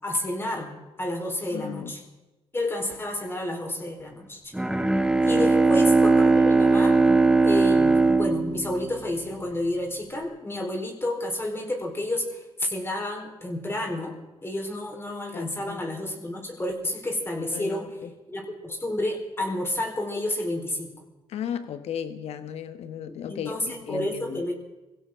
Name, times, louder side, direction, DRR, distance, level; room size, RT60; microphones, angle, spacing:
voice 1, 0.0-2.0 2.5-4.5 5.2-7.0 7.4-14.2 14.4-17.9 18.3-20.9 23.3-24.5, left 1 dB, 20° left, 1 dB, 4.2 m, -30 dB
voice 2, 1.5-1.9 5.3-5.5 15.3-15.8 17.4-18.1 21.3-24.4, left 8 dB, 80° left, 10 dB, 1.4 m, -35 dB
Bowed string instrument, 4.5-9.5, right 3 dB, 5° right, 1.4 m, -20 dB
22.0 x 16.5 x 3.8 m, 1.1 s
cardioid pair, 70°, 11 cm